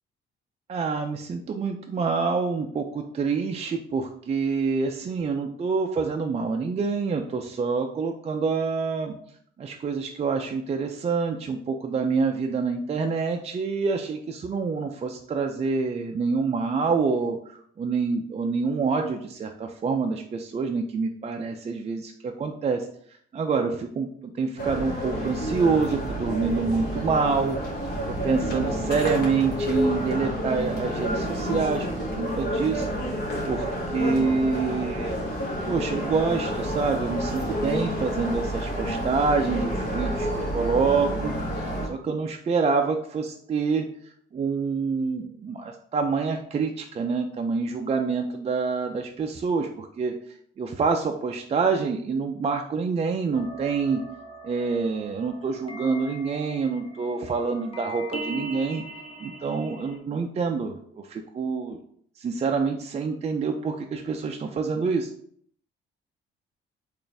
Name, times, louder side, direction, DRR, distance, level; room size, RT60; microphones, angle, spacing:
voice 1, 0.7-9.2 9.6-22.9 23.3-27.6 28.1-32.9 33.4-35.2 35.7-50.1 50.6-54.0 54.4-58.8 59.2-61.8 62.2-65.1, right 4 dB, 30° right, 3 dB, 0.4 m, -27 dB
sound 1, 24.6-41.9, equal, 55° left, 1.2 m, -29 dB
sound 2, 53.3-60.0, right 1 dB, 30° left, 0.8 m, -40 dB
4.1 x 2.5 x 3.3 m, 0.62 s
cardioid pair, 90°, 20 cm